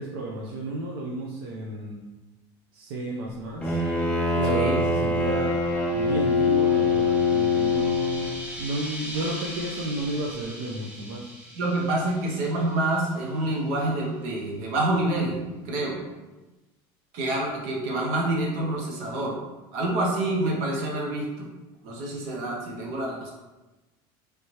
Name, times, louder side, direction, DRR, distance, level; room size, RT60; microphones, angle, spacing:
voice 1, 0.0-2.1 2.7-3.8 4.3-5.6 5.9-11.3, right 2 dB, 90° right, -2 dB, 0.5 m, -32 dB
Bowed string instrument, 3.6-8.5, left 3 dB, 10° left, 0.6 m, -23 dB
sound 1, 5.1-13.4, equal, 10° right, 0.9 m, -41 dB
voice 2, 11.5-16.0 17.1-19.4 19.7-21.5 21.8-23.3, right 2 dB, 70° right, -2 dB, 0.9 m, -27 dB
3.2 x 2.8 x 3.1 m, 1.1 s
supercardioid pair, 130°, 11 cm